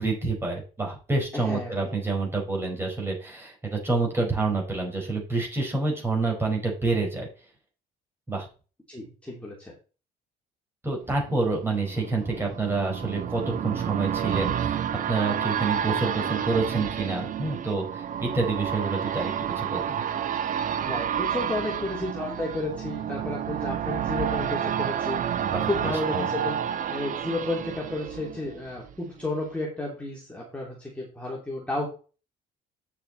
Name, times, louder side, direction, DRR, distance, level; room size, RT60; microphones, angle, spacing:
voice 1, 0.0-7.3 8.3-8.5 10.8-14.8 15.1-19.8 25.4-25.7 26.1-26.2, right 3 dB, 15° right, 0 dB, 4.7 m, -28 dB
voice 2, 1.3-1.7 8.9-9.7 20.9-31.9, left 2 dB, 5° left, -4 dB, 3.1 m, -32 dB
sound 1, 11.3-28.9 29.3-29.4, right 9 dB, 50° right, 1.1 m, -30 dB
9.3 x 7.0 x 4.1 m, 0.34 s
cardioid pair, 110°, 17 cm